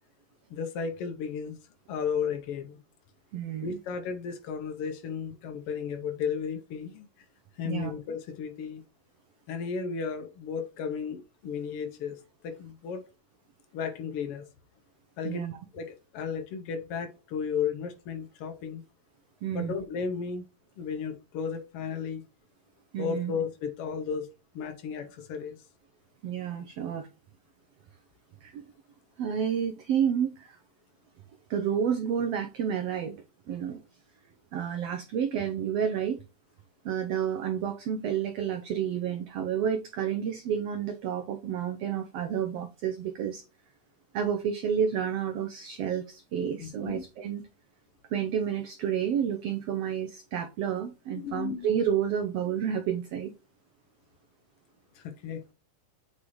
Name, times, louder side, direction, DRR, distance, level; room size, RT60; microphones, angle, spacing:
voice 1, 0.5-1.6 1.9-2.8 3.6-7.1 7.6-8.8 9.5-13.0 13.7-14.5 15.2-15.4 15.7-18.8 19.5-20.4 20.8-22.3 23.0-24.3 24.5-25.6 46.6-47.0 51.2-51.7 54.9-55.4, left 6 dB, 85° left, 1.2 m, -34 dB
voice 2, 3.3-3.8 7.6-7.9 15.2-15.6 19.4-19.8 22.9-23.3 26.2-27.1 28.4-28.6 29.2-30.6 31.5-33.2 33.5-33.8 34.5-36.2 36.8-43.4 44.1-47.4 48.1-53.3, right 8 dB, 90° right, 1.4 m, -30 dB
8.4 x 5.0 x 3.1 m
omnidirectional pair, 3.7 m